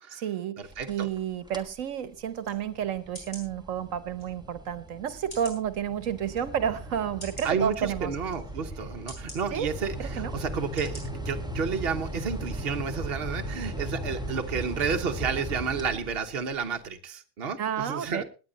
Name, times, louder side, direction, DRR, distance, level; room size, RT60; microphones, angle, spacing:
voice 1, 0.1-8.1 9.5-9.7 10.0-10.3 17.6-18.2, right 9 dB, 85° right, 14 dB, 1.3 m, -31 dB
sound 1, 0.6-1.2 1.5-1.8 2.3-16.5, right 1 dB, 5° right, 1.3 m, -38 dB
voice 2, 0.8-1.1 7.4-18.2, right 6 dB, 50° right, 6 dB, 1.2 m, -31 dB
sound 2, 2.4-2.6 3.1-3.5 4.2-4.3 5.3-5.6 6.3-6.4 7.2-7.5 8.3-8.4 9.1-9.4 10.1-10.2 10.8-11.0 11.5-11.6, equal, 30° left, 5.9 m, -43 dB
18.0 x 9.5 x 3.9 m, 0.33 s
omnidirectional pair, 1.3 m